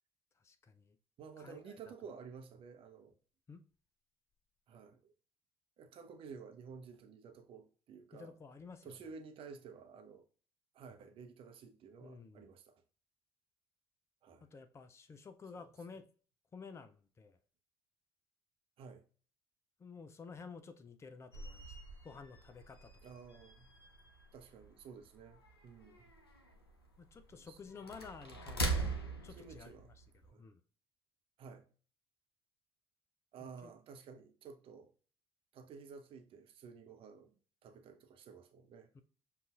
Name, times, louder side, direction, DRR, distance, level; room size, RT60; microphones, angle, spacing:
voice 1, 0.4-1.0 1.4-1.9 3.5-3.6 8.1-9.0 12.0-12.5 14.4-16.1 16.5-17.4 19.8-21.8 22.0-22.9 27.0-30.6 33.6-33.7 38.9-39.0, left 5 dB, 20° left, 0.4 m, -52 dB
voice 2, 1.2-3.1 4.7-5.1 5.8-8.3 8.8-10.2 10.7-12.7 14.2-14.5 18.8-19.0 23.0-23.7 24.3-26.1 27.3-27.7 29.3-29.9 30.3-30.5 31.4-31.7 33.3-34.9 35.5-37.3 37.6-38.9, right 5 dB, 45° right, 0.7 m, -53 dB
sound 1, 21.3-30.3, right 3 dB, 85° left, 0.5 m, -43 dB
6.7 x 2.5 x 2.4 m
figure-of-eight pair, 50°, 13 cm